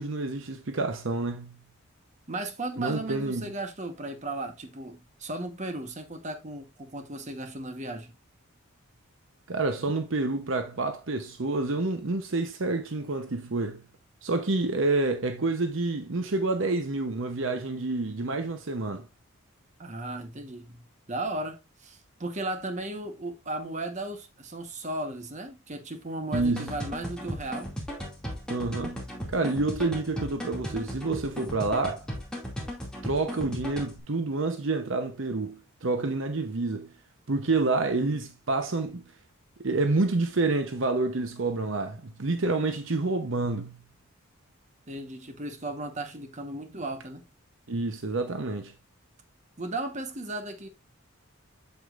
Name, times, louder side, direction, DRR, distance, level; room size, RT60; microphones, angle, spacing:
voice 1, 0.0-1.6 2.8-3.5 9.5-13.8 14.2-19.0 26.3-26.7 28.5-32.0 33.0-36.9 37.3-39.0 39.6-43.8 47.7-48.7, right 3 dB, 60° right, 0.8 m, -28 dB
voice 2, 2.3-8.1 19.8-27.7 44.9-47.2 49.6-50.7, right 2 dB, 35° right, 1.1 m, -36 dB
sound 1, 26.3-34.0, equal, 5° left, 2.3 m, -36 dB
8.0 x 7.1 x 2.5 m
head